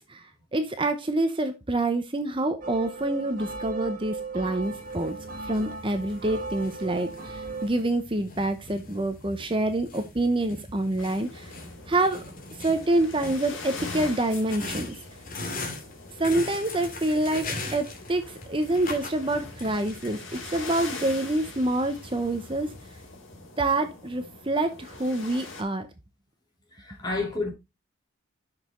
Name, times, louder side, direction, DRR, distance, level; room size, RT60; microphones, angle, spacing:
voice 1, 0.1-5.2 5.4-11.5 11.9-12.2 12.5-14.9 16.2-20.2 20.5-22.7 23.6-25.9, right 2 dB, 25° right, 0.8 m, -27 dB
sound 1, 2.6-7.7, right 4 dB, 45° right, 2.0 m, -37 dB
sound 2, 4.6-23.1, left 2 dB, 45° left, 2.3 m, -41 dB
sound 3, 11.0-25.6, left 3 dB, 80° left, 3.1 m, -43 dB
voice 2, 26.8-27.5, left 3 dB, 20° left, 3.2 m, -29 dB
8.7 x 6.5 x 3.7 m
head